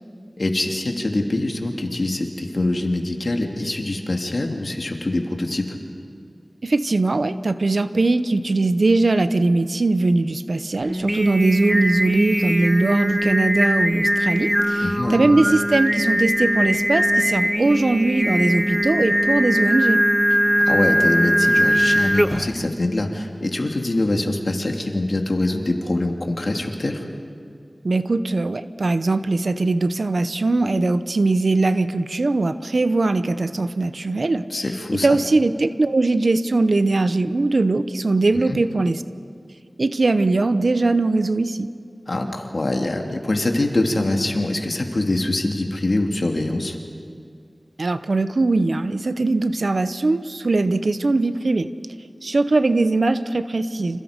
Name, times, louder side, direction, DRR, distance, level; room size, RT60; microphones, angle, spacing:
voice 1, 0.4-5.8 14.8-15.2 20.6-27.0 34.5-35.2 38.5-38.6 42.1-46.8, left 2 dB, 65° left, 2 dB, 2.8 m, -24 dB
voice 2, 6.6-20.0 27.8-34.4 35.0-39.0 39.8-41.7 47.8-51.7 52.2-54.0, right 2 dB, 75° right, 12 dB, 0.9 m, -20 dB
Singing, 10.9-22.6, equal, 5° right, 0.6 m, -21 dB
30.0 x 27.5 x 5.2 m, 2.3 s
wide cardioid pair, 45°, 0 cm